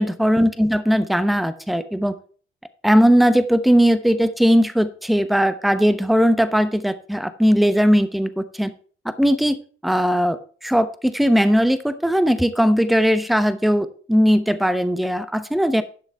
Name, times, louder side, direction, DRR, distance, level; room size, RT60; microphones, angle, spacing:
voice 1, 0.0-2.1 2.8-8.7 9.0-9.6 9.8-15.8, equal, ahead, 12 dB, 0.8 m, -18 dB
11.0 x 6.2 x 4.7 m, 0.43 s
cardioid pair, 90°, 20 cm